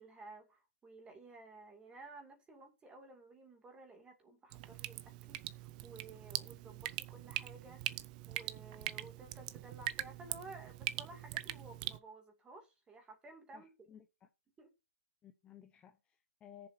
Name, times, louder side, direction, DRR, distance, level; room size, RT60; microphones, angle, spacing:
voice 1, 0.0-13.7 14.6-14.7, right 3 dB, 10° right, 2.5 m, -55 dB
Drip, 4.5-12.0, right 16 dB, 35° right, 0.6 m, -42 dB
voice 2, 13.5-14.3 15.2-16.7, left 9 dB, 15° left, 0.8 m, -57 dB
17.5 x 7.1 x 2.7 m
hypercardioid pair, 150°, 8 cm